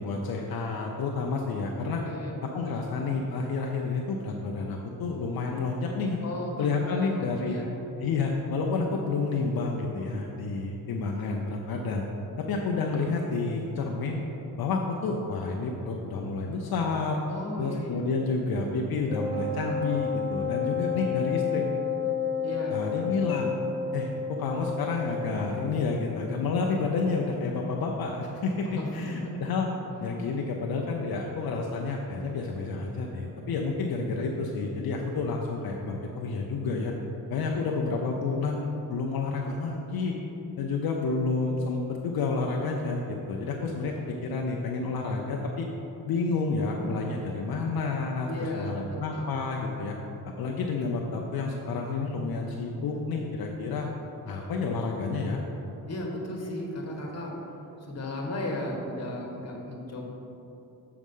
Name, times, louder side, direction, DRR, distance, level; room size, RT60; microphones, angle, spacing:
voice 1, 0.0-2.0 2.5-6.2 6.6-7.6 8.0-12.0 12.4-14.2 14.6-17.2 17.6-21.7 22.7-23.6 23.9-28.7 28.9-29.7 30.0-36.9 37.3-40.1 40.6-45.7 46.0-50.0 50.4-53.9 54.3-55.4, left 4 dB, 75° left, 0 dB, 0.7 m, -30 dB
voice 2, 1.9-2.4 6.2-7.7 17.3-18.0 22.4-22.8 28.6-29.4 48.2-49.3 55.9-60.1, left 1 dB, 45° left, 0 dB, 1.5 m, -35 dB
Wind instrument woodwind instrument, 19.1-25.7, left 6 dB, 5° right, 1.7 m, -31 dB
7.4 x 4.8 x 5.5 m, 3.0 s
cardioid pair, 90°, 36 cm